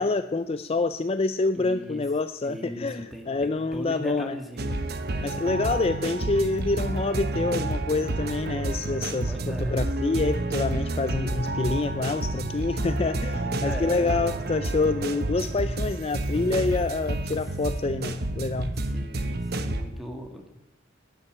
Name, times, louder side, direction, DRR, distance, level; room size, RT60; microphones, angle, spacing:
voice 1, 0.0-4.3 5.2-18.7, left 3 dB, 30° left, 11 dB, 0.4 m, -27 dB
voice 2, 1.5-2.0 2.4-6.0 9.3-9.8 13.4-14.2 17.3-17.4 18.7-20.5, equal, ahead, 3 dB, 2.0 m, -39 dB
sound 1, 4.6-19.8, right 2 dB, 50° right, 1.0 m, -29 dB
13.0 x 9.6 x 8.7 m, 0.91 s
head